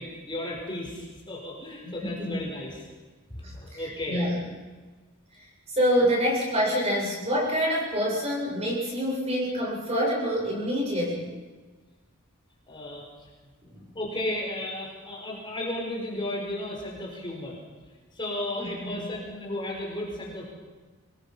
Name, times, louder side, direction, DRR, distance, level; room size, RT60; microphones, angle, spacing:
voice 1, 0.0-2.9 3.3-4.2 12.7-13.3 13.9-17.6 18.1-20.5, left 1 dB, 20° left, -2 dB, 4.7 m, -34 dB
voice 2, 2.0-2.4 3.4-4.5 5.7-11.3 13.7-13.8 18.6-19.1, equal, 30° right, -3 dB, 7.6 m, -27 dB
25.5 x 21.0 x 5.6 m, 1.3 s
head